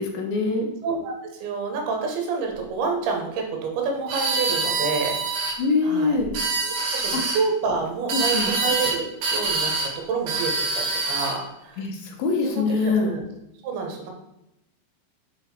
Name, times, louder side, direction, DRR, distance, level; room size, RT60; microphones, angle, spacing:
voice 1, 0.0-0.7 5.6-6.3 7.1-7.2 8.1-8.5 11.8-13.1, left 4 dB, 75° left, 1 dB, 2.7 m, -24 dB
voice 2, 0.8-6.2 6.6-11.8 12.4-13.2 13.6-14.1, right 4 dB, 80° right, 2 dB, 3.2 m, -29 dB
sound 1, 4.1-5.6 6.2-7.4 8.1-9.0 9.2-9.9 10.3-11.4, right 3 dB, 65° right, 2.5 m, -25 dB
7.9 x 4.0 x 4.4 m, 0.86 s
omnidirectional pair, 4.4 m